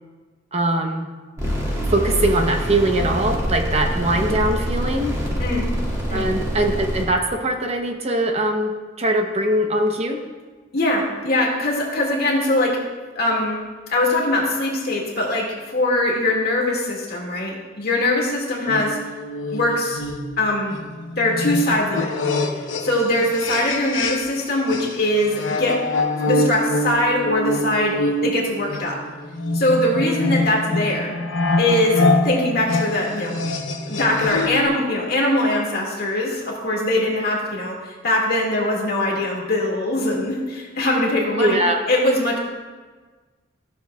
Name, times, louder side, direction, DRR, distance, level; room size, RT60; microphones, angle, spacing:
voice 1, 0.5-1.1 1.9-5.1 6.1-10.2 41.4-41.8, right 1 dB, 35° right, 3 dB, 0.7 m, -21 dB
sound 1, 1.4-7.0, equal, 15° right, 1.8 m, -25 dB
voice 2, 10.7-12.8 13.2-13.6 13.9-19.0 19.5-20.0 20.4-20.8 21.2-22.1 22.5-25.8 26.3-29.0 29.5-31.1 31.6-33.3 33.9-41.6 41.9-42.4, left 1 dB, 55° left, -2 dB, 1.8 m, -22 dB
sound 2, 18.7-24.4 24.7-34.7, left 2 dB, 85° left, 0.8 m, -25 dB
14.0 x 6.8 x 2.3 m, 1.4 s
head